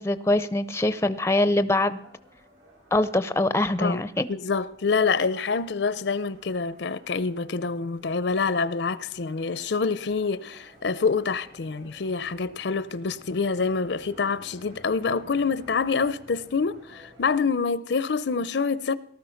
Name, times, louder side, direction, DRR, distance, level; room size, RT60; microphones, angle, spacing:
voice 1, 0.0-2.0 2.9-4.3, left 2 dB, 15° left, 0.5 m, -23 dB
sound 1, 2.0-17.4, equal, 80° right, 6.9 m, -52 dB
voice 2, 4.3-18.9, left 4 dB, 65° left, 0.6 m, -26 dB
18.5 x 13.0 x 5.8 m
head